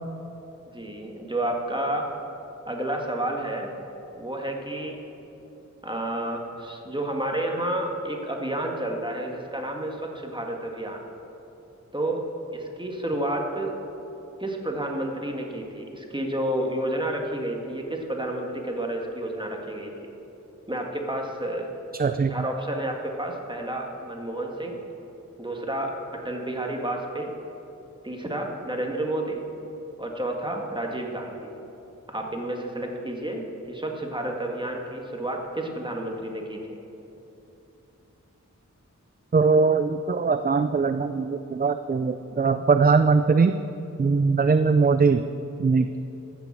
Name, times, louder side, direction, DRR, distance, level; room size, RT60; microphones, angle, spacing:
voice 1, 0.7-2.1 2.7-3.7 4.1-5.0 5.8-11.0 11.9-12.3 12.5-13.8 14.4-19.9 20.7-21.7 22.3-24.8 25.4-27.3 28.0-29.5 30.0-31.5 32.1-36.7, right 1 dB, 15° right, 1 dB, 1.8 m, -30 dB
voice 2, 22.0-22.4 39.3-43.6 44.0-45.2 45.6-46.0, right 4 dB, 30° right, 10 dB, 0.4 m, -21 dB
14.5 x 7.1 x 7.4 m, 3.0 s
wide cardioid pair, 55°, 30 cm